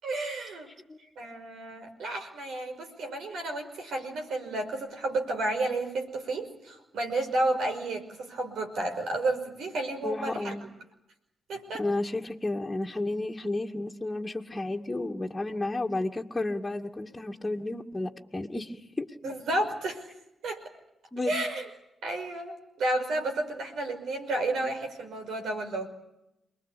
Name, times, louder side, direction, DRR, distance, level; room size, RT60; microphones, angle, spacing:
voice 1, 0.0-0.7 1.2-10.7 11.5-11.8 19.2-20.1 20.4-20.6 21.3-21.7 22.0-25.9, right 2 dB, 70° right, 5 dB, 5.6 m, -31 dB
voice 2, 10.0-10.6 11.8-19.1 21.1-21.3, left 2 dB, 20° left, 0 dB, 2.3 m, -32 dB
29.0 x 21.0 x 8.6 m, 0.85 s
hypercardioid pair, 40°, 0 cm